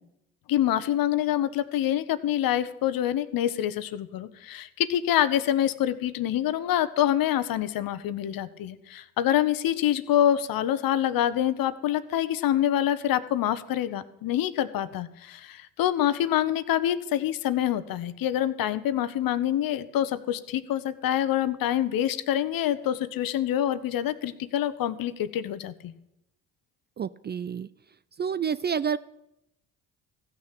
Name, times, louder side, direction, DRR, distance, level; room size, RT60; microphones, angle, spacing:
voice 1, 0.5-25.9, left 11 dB, 55° left, 14 dB, 1.0 m, -26 dB
voice 2, 27.0-27.7 28.2-29.0, right 7 dB, 25° right, 17 dB, 0.4 m, -28 dB
15.5 x 6.5 x 8.4 m, 0.85 s
hypercardioid pair, 50°, 41 cm